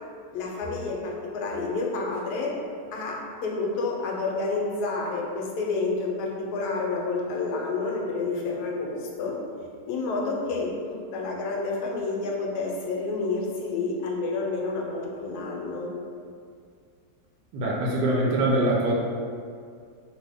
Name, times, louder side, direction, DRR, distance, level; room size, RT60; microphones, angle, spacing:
voice 1, 0.3-2.5 2.9-9.4 9.9-15.9, left 3 dB, 80° left, -1 dB, 1.1 m, -29 dB
voice 2, 17.5-18.9, right 1 dB, 80° right, -4 dB, 1.1 m, -23 dB
2.7 x 2.6 x 3.4 m, 2.2 s
omnidirectional pair, 1.8 m